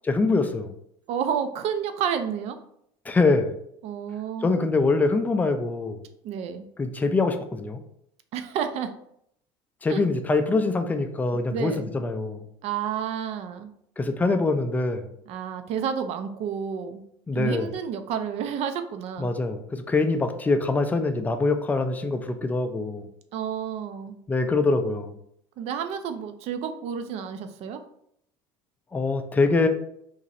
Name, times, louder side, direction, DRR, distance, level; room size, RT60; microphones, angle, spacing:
voice 1, 0.0-0.7 3.1-3.6 4.4-6.0 6.8-7.8 9.8-12.4 14.0-15.1 17.3-17.7 19.2-23.1 24.3-25.2 28.9-29.7, left 3 dB, 10° left, 7 dB, 0.4 m, -24 dB
voice 2, 1.1-2.6 3.8-4.7 6.2-6.7 8.3-8.9 9.9-10.0 11.5-11.9 12.6-13.7 15.3-17.0 17.4-19.3 23.3-24.2 25.6-27.8, right 8 dB, 50° right, 8 dB, 0.4 m, -30 dB
2.9 x 2.6 x 4.0 m, 0.72 s
supercardioid pair, 125°, 13 cm